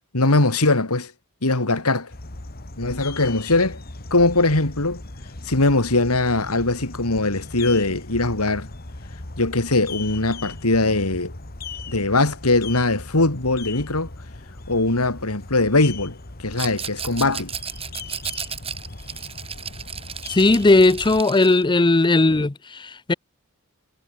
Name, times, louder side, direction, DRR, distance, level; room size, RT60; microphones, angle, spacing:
voice 1, 0.1-1.1 1.4-2.1 2.8-3.8 4.1-5.0 5.4-8.7 9.4-11.3 11.9-14.1 14.7-17.5, left 2 dB, 85° left, 3.1 m, -21 dB
sound 1, 2.1-21.2, left 3 dB, 45° left, 2.1 m, -38 dB
Rattle, 16.5-21.6, right 7 dB, 25° right, 2.7 m, -34 dB
voice 2, 20.3-23.1, left 2 dB, 20° left, 0.6 m, -17 dB
head